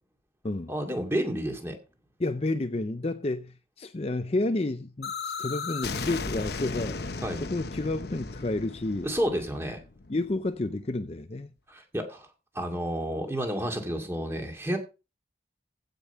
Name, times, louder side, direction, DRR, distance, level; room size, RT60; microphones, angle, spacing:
voice 1, 0.7-1.8 7.2-7.4 9.0-9.8 11.7-12.3 12.5-14.8, equal, 15° right, 2.3 m, -30 dB
voice 2, 2.2-7.0 7.4-9.1 10.1-11.5, left 2 dB, 35° left, 0.5 m, -30 dB
sound 1, 5.0-10.8, left 4 dB, 60° left, 0.9 m, -36 dB
15.5 x 5.3 x 5.6 m
head